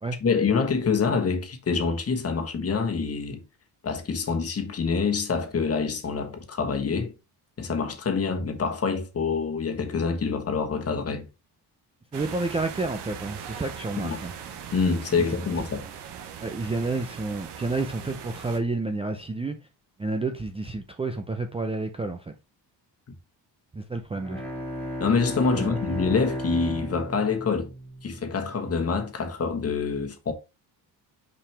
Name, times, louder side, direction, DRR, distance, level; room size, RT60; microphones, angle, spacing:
voice 1, 0.2-3.4 3.8-7.1 7.6-11.3 14.0-14.2 14.7-15.9 25.0-27.7 28.0-30.3, left 5 dB, 35° left, 1.3 m, -26 dB
voice 2, 12.1-14.3 16.4-19.6 20.0-22.3 23.7-24.4 25.5-25.8, right 3 dB, 15° right, 0.5 m, -30 dB
sound 1, 12.1-18.6, right 8 dB, 70° right, 1.2 m, -40 dB
Bowed string instrument, 24.1-28.6, left 1 dB, 5° left, 2.2 m, -34 dB
5.8 x 5.0 x 3.3 m
cardioid pair, 125°, 42 cm